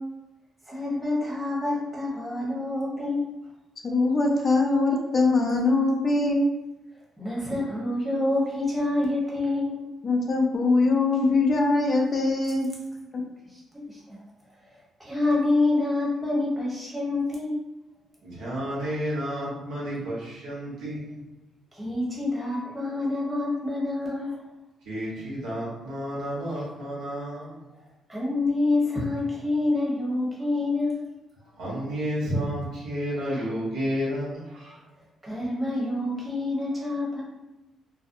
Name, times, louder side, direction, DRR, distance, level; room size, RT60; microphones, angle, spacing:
voice 1, 0.7-3.3 7.2-9.8 13.5-13.6 13.9-14.2 15.0-17.6 21.7-24.4 28.1-31.0 35.2-37.2, left 2 dB, 15° right, -6 dB, 1.0 m, -27 dB
voice 2, 3.8-6.5 10.0-12.7, left 3 dB, 40° left, 1 dB, 0.4 m, -22 dB
voice 3, 18.2-21.2 24.8-27.6 31.6-34.8, equal, 85° right, -7 dB, 1.1 m, -31 dB
2.5 x 2.0 x 2.6 m, 1.0 s
cardioid pair, 90°, 0 cm